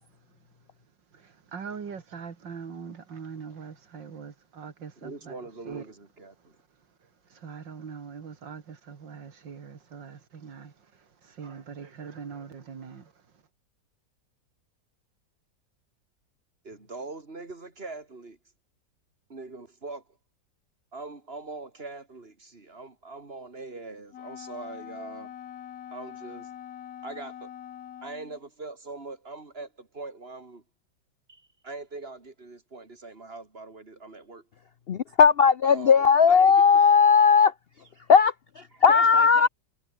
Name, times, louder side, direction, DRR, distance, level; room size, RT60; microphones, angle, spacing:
voice 1, 1.1-5.4 5.7-5.8 7.3-13.1, right 6 dB, 75° right, 2.8 m, -42 dB
voice 2, 5.0-6.6 16.6-18.4 19.3-20.0 20.9-25.3 25.9-26.5 27.0-27.5 28.0-30.6 31.3-34.5 35.6-36.5 38.9-39.5, right 3 dB, 30° right, 3.4 m, -41 dB
Wind instrument woodwind instrument, 24.1-28.4, left 10 dB, 60° left, 1.3 m, -43 dB
voice 3, 34.9-39.5, left 6 dB, 80° left, 0.5 m, -18 dB
omnidirectional pair, 2.0 m